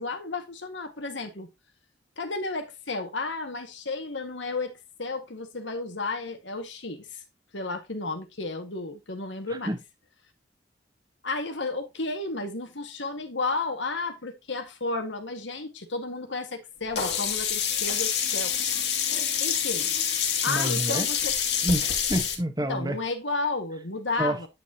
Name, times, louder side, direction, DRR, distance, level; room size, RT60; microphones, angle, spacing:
voice 1, 0.0-1.5 2.2-4.7 5.0-7.0 7.5-9.8 11.2-18.5 19.4-19.9 20.4-21.3 22.7-24.5, left 3 dB, 90° left, 1.8 m, -32 dB
Sink (filling or washing), 17.0-22.4, left 8 dB, 65° left, 2.3 m, -27 dB
voice 2, 20.5-21.1 21.6-23.0 24.2-24.4, right 1 dB, 20° right, 1.2 m, -28 dB
9.9 x 6.4 x 2.9 m
head